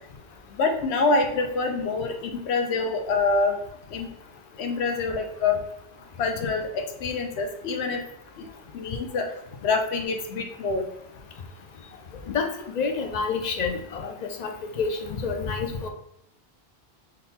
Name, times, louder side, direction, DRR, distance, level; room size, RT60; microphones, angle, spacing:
voice 1, 0.6-3.6 3.9-4.1 4.6-5.6 6.2-8.0 8.4-8.5 8.7-9.3 9.6-10.8, left 3 dB, 70° left, 4 dB, 1.0 m, -26 dB
voice 2, 12.7-14.1 14.4-15.9, left 5 dB, 50° left, 4 dB, 0.6 m, -28 dB
3.8 x 2.6 x 4.1 m, 0.78 s
omnidirectional pair, 1.2 m